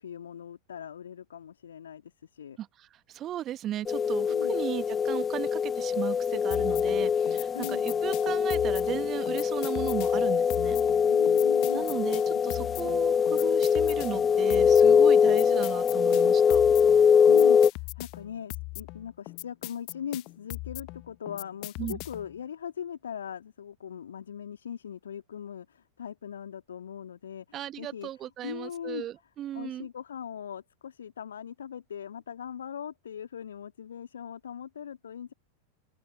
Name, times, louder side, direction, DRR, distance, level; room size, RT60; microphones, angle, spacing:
voice 1, 0.0-2.6 4.3-4.6 7.5-7.8 11.0-11.9 12.3-12.9 17.3-28.1 28.4-29.1 29.5-35.3, left 8 dB, 65° left, 3.2 m, -40 dB
voice 2, 2.6-10.8 11.7-16.6 21.8-22.0 27.5-29.9, right 12 dB, 30° right, 1.5 m, -36 dB
sound 1, 3.9-17.7, left 7 dB, 20° left, 0.6 m, -23 dB
sound 2, 6.5-22.4, left 25 dB, 40° left, 1.1 m, -40 dB
open air
figure-of-eight pair, 90°, 0 cm